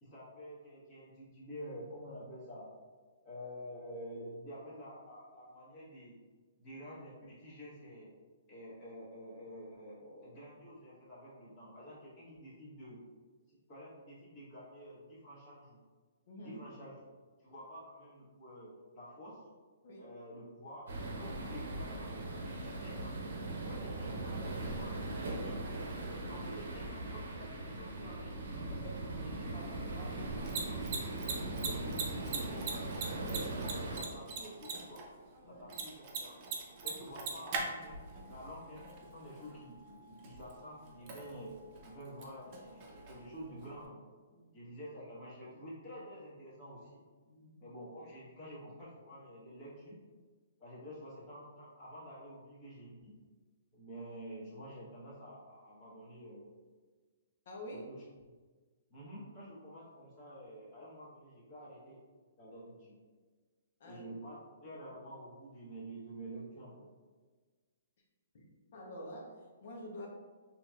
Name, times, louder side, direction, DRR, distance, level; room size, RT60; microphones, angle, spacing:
voice 1, 0.0-2.7 3.2-6.2 6.6-8.1 8.5-13.0 13.5-15.8 16.4-16.9 17.4-19.4 20.0-20.9 21.1-23.2 23.5-25.6 26.3-28.3 29.2-32.9 33.2-35.0 35.5-36.4 36.8-38.0 38.3-41.6 41.8-44.1 44.5-47.0 47.6-50.0 50.6-53.1 53.7-56.5 57.7-58.0 58.9-62.0 62.4-63.0 63.8-66.7, equal, 30° left, -7 dB, 1.3 m, -49 dB
voice 2, 16.3-16.6 19.8-20.1 26.0-26.4 28.7-29.4 35.4-35.7 44.3-44.5 47.2-47.6 57.5-57.9 63.8-64.0 64.6-64.8 68.3-70.1, equal, 60° left, -1 dB, 0.8 m, -48 dB
sound 1, 20.9-34.0, right 2 dB, 70° right, 0.7 m, -40 dB
Mechanisms, 30.2-43.8, right 4 dB, 35° right, 0.6 m, -43 dB
3.8 x 2.9 x 2.4 m, 1.4 s
hypercardioid pair, 150°, 0 cm